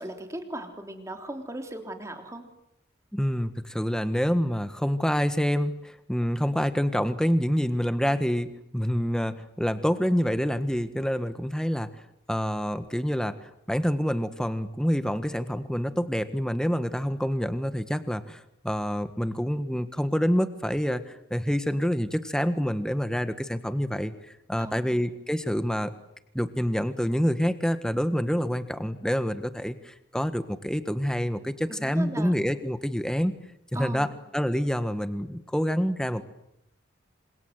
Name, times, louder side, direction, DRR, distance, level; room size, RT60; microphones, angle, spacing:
voice 1, 0.0-2.4 22.6-22.7 24.6-25.0 31.7-32.3 33.7-34.1, right 1 dB, 15° right, 4 dB, 3.5 m, -38 dB
voice 2, 3.1-11.9 12.3-25.9 26.3-33.3 33.7-36.2, equal, 5° left, 10 dB, 1.5 m, -27 dB
28.0 x 27.0 x 8.0 m, 0.81 s
head